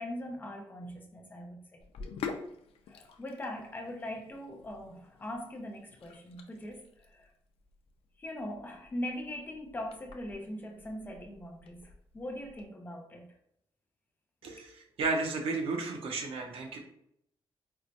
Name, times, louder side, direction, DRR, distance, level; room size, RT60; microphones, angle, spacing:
voice 1, 0.0-1.8 2.9-7.3 8.2-13.3 14.6-14.7, left 1 dB, 20° left, 2 dB, 0.4 m, -41 dB
Sink (filling or washing), 1.8-12.6, left 5 dB, 90° left, 0.4 m, -47 dB
voice 2, 14.4-16.8, right 3 dB, 80° right, 2 dB, 0.6 m, -33 dB
4.3 x 2.0 x 2.6 m, 0.73 s
wide cardioid pair, 180°, 9 cm